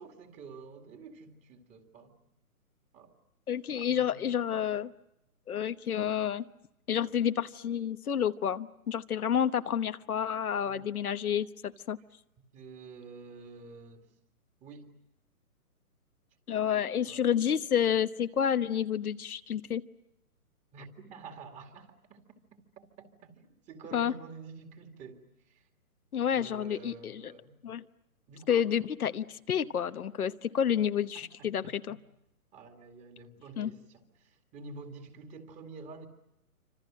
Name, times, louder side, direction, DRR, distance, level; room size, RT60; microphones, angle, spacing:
voice 1, 0.0-2.1 2.9-3.1 3.7-4.2 10.7-10.9 12.5-14.1 14.6-14.9 17.1-17.2 20.7-22.4 22.8-25.7 26.3-27.6 28.3-28.7 31.1-32.0 32.5-36.1, right 4 dB, 15° right, 5 dB, 2.4 m, -49 dB
voice 2, 3.5-4.9 5.5-6.5 6.9-12.0 16.5-19.8 23.9-24.1 26.1-27.2 27.6-27.8 28.5-32.0 33.6-33.7, left 8 dB, 70° left, 10 dB, 1.1 m, -29 dB
27.5 x 26.0 x 7.5 m, 0.83 s
hypercardioid pair, 145°, 45 cm